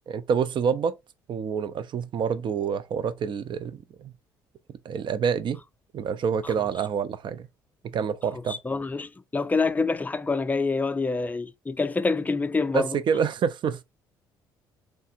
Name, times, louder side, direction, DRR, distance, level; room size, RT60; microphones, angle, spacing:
voice 1, 0.1-0.9 1.3-4.1 4.8-5.6 5.9-7.5 7.8-8.6 12.7-13.8, right 7 dB, 50° right, 0.5 m, -27 dB
voice 2, 8.3-13.0, left 4 dB, 15° left, 0.4 m, -27 dB
3.3 x 2.4 x 2.8 m
hypercardioid pair, 60°, 10 cm